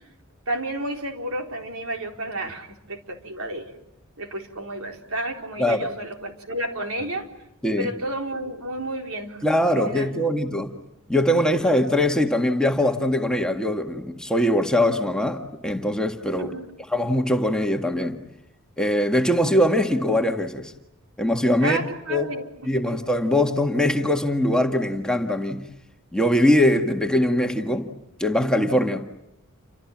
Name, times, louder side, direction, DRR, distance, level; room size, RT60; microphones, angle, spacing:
voice 1, 0.5-3.7 4.2-7.3 7.8-10.5 16.4-16.6 21.6-22.8, right 1 dB, 75° right, 3 dB, 4.2 m, -31 dB
voice 2, 5.6-5.9 7.6-7.9 9.4-10.7 11.1-16.5 16.9-18.2 18.8-20.7 21.2-21.8 22.1-22.3 22.6-25.6 26.1-27.9 28.2-29.1, left 1 dB, 5° left, 3 dB, 1.8 m, -22 dB
30.0 x 27.0 x 7.4 m, 0.83 s
head